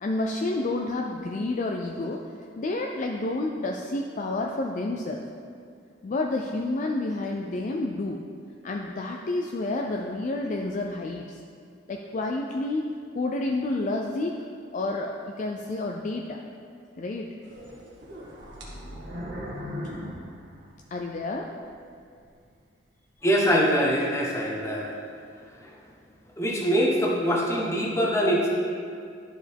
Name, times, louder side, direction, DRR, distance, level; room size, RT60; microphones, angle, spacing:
voice 1, 0.0-2.3 2.6-5.2 6.0-8.2 8.6-11.4 11.9-14.4 14.7-16.4 17.0-17.3 19.8-19.9 20.9-21.5, left 2 dB, 40° left, 1 dB, 0.4 m, -29 dB
sound 1, 17.4-21.2 21.6-21.7 22.4-22.5, equal, 75° right, 1.5 m, -38 dB
voice 2, 23.2-24.9 25.6-25.7 26.4-28.5, equal, 15° left, -2 dB, 1.0 m, -23 dB
11.0 x 5.1 x 3.4 m, 2.3 s
head